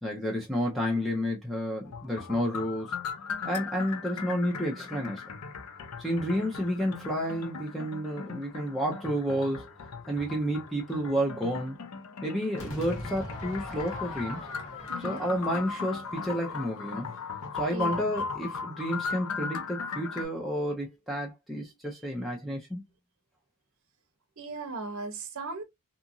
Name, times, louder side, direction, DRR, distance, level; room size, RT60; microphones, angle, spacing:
voice 1, 0.0-2.9 3.4-5.2 6.0-9.7 10.1-11.8 12.2-14.5 15.0-17.1 17.5-22.8, equal, ahead, 0.6 m, -30 dB
sound 1, 1.8-20.2, left 5 dB, 80° left, 0.6 m, -38 dB
Crowd / Fireworks, 12.6-17.8, left 2 dB, 60° left, 1.1 m, -42 dB
voice 2, 14.9-15.2 17.7-18.1 24.4-25.6, right 3 dB, 65° right, 0.7 m, -37 dB
2.8 x 2.5 x 2.5 m
head